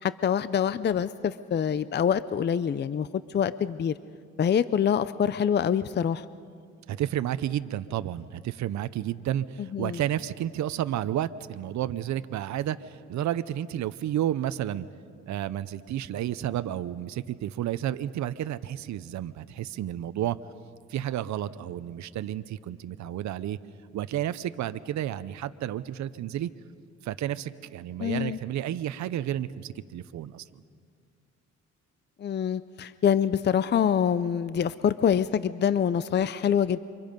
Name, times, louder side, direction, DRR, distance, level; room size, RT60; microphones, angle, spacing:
voice 1, 0.0-3.9 4.4-6.2 9.7-10.0 28.0-28.4 32.2-36.8, left 8 dB, 35° left, 15 dB, 0.5 m, -25 dB
voice 2, 6.9-14.9 15.3-20.4 20.9-23.6 23.9-26.5 27.0-30.4, right 12 dB, 70° right, 13 dB, 0.7 m, -31 dB
28.5 x 25.0 x 5.3 m, 2.2 s
cardioid pair, 90°, 30 cm